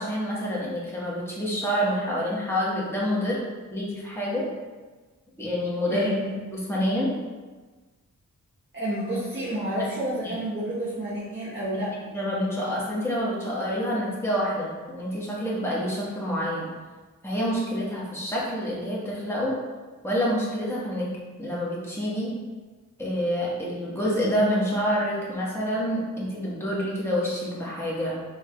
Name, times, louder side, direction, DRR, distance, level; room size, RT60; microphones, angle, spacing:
voice 1, 0.0-3.4 3.7-4.4 5.4-6.1 6.5-7.1 10.2-10.3 12.1-16.7 17.2-19.5 20.0-21.1 21.4-22.3 23.0-28.1, equal, 5° left, -6 dB, 1.2 m, -27 dB
voice 2, 5.8-6.4 8.7-11.9, right 1 dB, 35° right, -8 dB, 1.0 m, -30 dB
4.6 x 3.2 x 2.3 m, 1.3 s
cardioid pair, 80°, 34 cm